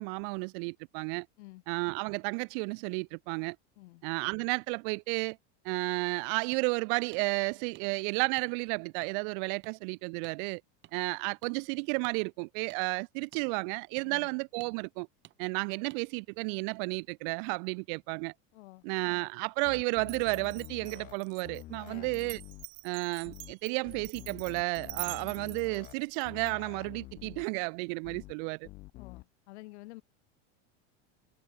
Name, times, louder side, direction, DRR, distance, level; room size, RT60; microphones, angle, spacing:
voice 1, 0.0-1.3 1.7-3.6 4.0-5.4 5.6-10.6 10.9-15.1 15.4-18.3 18.8-22.4 22.8-28.7, right 38 dB, 50° right, 0.5 m, -32 dB
sound 1, 6.5-6.6 7.1-7.2 7.7-7.9 8.4-8.5 9.0-9.1 9.6-9.8 10.2-10.4 10.8-10.9 11.4-11.5 12.0-12.2 12.7-12.8 13.3-13.4 14.0-14.1 14.6-14.7 15.2-15.4 15.9-16.0, right 16 dB, 35° right, 1.5 m, -54 dB
voice 2, 18.5-18.9 21.9-22.2 28.9-30.0, left 21 dB, 80° left, 3.2 m, -50 dB
sound 2, 19.7-21.1 21.4-22.7 23.2-23.5 23.8-25.9 26.2-27.5 28.0-28.3 28.6-29.2, left 19 dB, 25° left, 0.4 m, -47 dB
Glass, 20.0-26.5, right 25 dB, 70° right, 0.8 m, -45 dB
cardioid pair, 165°, 33 cm